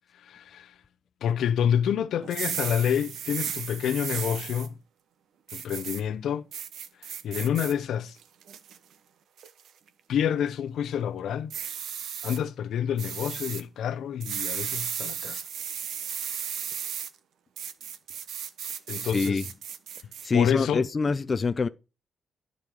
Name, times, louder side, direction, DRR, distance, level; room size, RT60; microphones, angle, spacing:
voice 1, 0.2-0.7 1.2-4.7 5.5-6.5 7.2-8.2 10.1-11.5 12.2-15.4 18.9-19.4 20.3-20.9, left 9 dB, 80° left, 0.9 m, -28 dB
sound 1, 2.2-4.7 5.5-6.0 6.5-7.7 8.2-8.8 9.4-9.7 11.5-12.4 13.0-13.6 14.2-17.1 17.6-20.3, right 8 dB, 75° right, 1.0 m, -35 dB
voice 2, 19.1-19.4 20.2-21.7, left 4 dB, 25° left, 0.5 m, -25 dB
12.0 x 5.3 x 4.7 m
wide cardioid pair, 160°, 0 cm